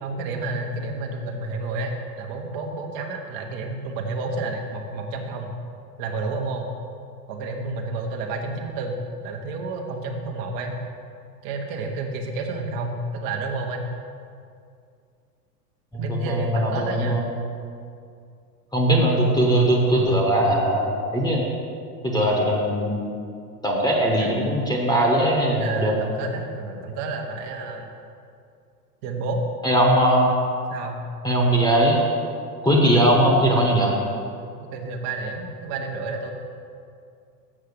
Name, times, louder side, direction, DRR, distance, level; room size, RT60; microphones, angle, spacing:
voice 1, 0.0-5.5 6.0-6.7 7.3-10.8 11.4-13.9 15.9-17.2 24.2-24.6 25.5-27.9 29.0-29.4 30.7-31.0 32.9-33.0 34.6-36.3, right 3 dB, 45° right, 1 dB, 1.2 m, -30 dB
voice 2, 15.9-17.3 18.7-21.4 22.0-23.0 23.6-25.9 29.6-30.3 31.2-32.0 32.6-34.0, right 1 dB, 10° left, -2 dB, 1.2 m, -20 dB
7.4 x 5.7 x 6.7 m, 2.4 s
hypercardioid pair, 115°, 49 cm